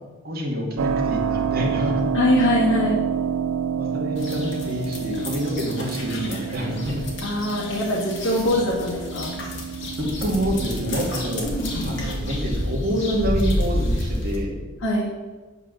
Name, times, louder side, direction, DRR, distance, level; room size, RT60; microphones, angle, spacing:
voice 1, 0.2-2.0 3.8-7.0 10.0-11.5 11.8-14.5, equal, 45° right, -2 dB, 2.2 m, -27 dB
Keyboard (musical), 0.8-13.3, right 7 dB, 85° right, 0.5 m, -29 dB
voice 2, 2.1-3.0 7.2-9.4 14.8-15.1, left 1 dB, 80° left, -6 dB, 1.7 m, -22 dB
sound 1, 4.2-14.4, left 1 dB, 60° left, 2.1 m, -30 dB
9.0 x 5.3 x 6.8 m, 1.3 s
head